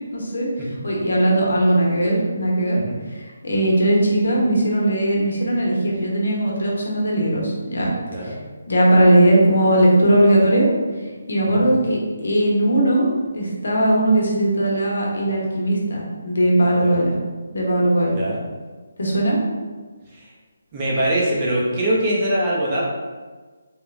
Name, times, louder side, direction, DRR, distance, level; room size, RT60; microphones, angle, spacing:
voice 1, 0.1-2.8 3.1-7.9 8.2-8.3 8.7-10.7 11.3-13.1 13.3-17.1 17.5-18.2 19.0-19.4, right 1 dB, 80° left, -3 dB, 0.8 m, -19 dB
voice 2, 20.7-22.8, right 1 dB, 25° right, -5 dB, 0.5 m, -23 dB
3.0 x 2.1 x 2.4 m, 1.4 s
hypercardioid pair, 165°, 0 cm